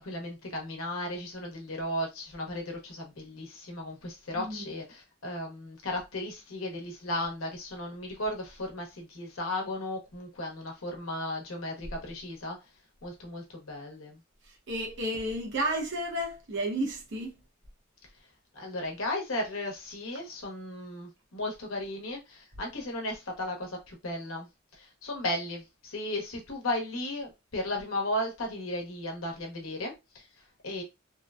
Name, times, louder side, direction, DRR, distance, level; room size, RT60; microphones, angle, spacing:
voice 1, 0.0-12.6 13.0-14.2 18.5-24.5 24.7-30.3 30.6-30.8, left 1 dB, 75° left, 0.9 m, -35 dB
voice 2, 4.4-4.7 14.7-17.4, right 1 dB, 60° right, 0.8 m, -32 dB
3.0 x 2.1 x 2.3 m
head